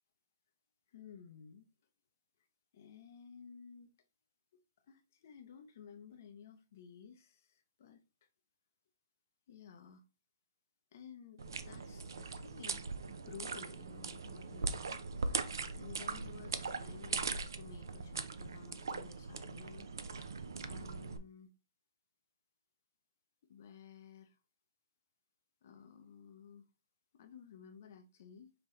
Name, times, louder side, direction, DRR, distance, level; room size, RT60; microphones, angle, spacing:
voice 1, 0.9-1.6 2.7-3.9 4.5-4.6 4.9-8.3 9.5-10.0 10.9-19.9 20.6-21.5 23.5-24.4 25.6-26.6 27.1-28.5, left 7 dB, 40° left, 0.5 m, -55 dB
sound 1, 11.4-21.2, right 4 dB, 70° right, 0.6 m, -40 dB
5.4 x 2.8 x 3.1 m
hypercardioid pair, 175°, 2 cm